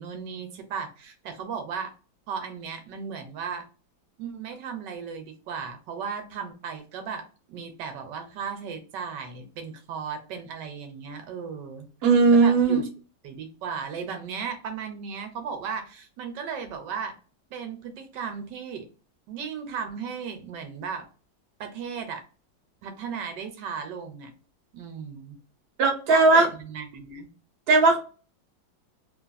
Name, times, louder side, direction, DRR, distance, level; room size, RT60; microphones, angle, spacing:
voice 1, 0.0-1.9 2.3-3.6 4.2-11.9 12.3-12.9 13.2-17.2 17.5-18.9 19.3-21.1 21.6-22.2 22.8-24.3 24.7-25.4 26.1-27.3, right 6 dB, 75° right, 6 dB, 1.2 m, -36 dB
voice 2, 12.0-12.8 25.8-26.5 27.7-28.0, right 3 dB, 55° right, 1 dB, 0.7 m, -17 dB
3.0 x 2.4 x 2.2 m, 0.36 s
omnidirectional pair, 2.1 m